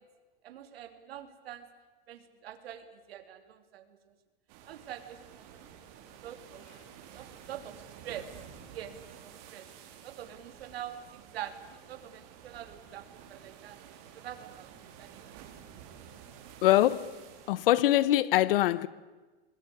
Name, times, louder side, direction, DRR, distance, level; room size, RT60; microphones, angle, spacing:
voice 1, 0.4-1.7 2.1-3.9 4.7-6.6 7.1-8.3 8.7-9.7 10.0-13.8 14.1-15.4, right 10 dB, 85° right, 2.9 m, -45 dB
sound 1, 4.5-17.5, right 8 dB, 45° right, 3.9 m, -51 dB
voice 2, 16.6-17.1 17.5-18.9, left 14 dB, 70° left, 1.1 m, -23 dB
26.0 x 20.0 x 8.5 m
supercardioid pair, 160°, 29 cm